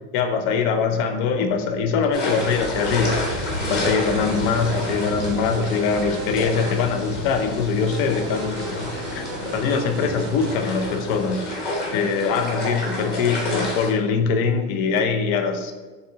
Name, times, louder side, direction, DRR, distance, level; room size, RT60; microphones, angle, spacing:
voice 1, 0.1-3.2 3.7-9.3 9.5-11.5 11.9-15.7, left 5 dB, 50° left, 6 dB, 0.6 m, -23 dB
sound 1, 2.1-13.9, left 1 dB, 30° left, 1.2 m, -29 dB
sound 2, 3.5-6.9 7.7-10.6, right 6 dB, 45° right, 0.6 m, -38 dB
6.5 x 2.8 x 2.7 m, 1.3 s
supercardioid pair, 150°, 36 cm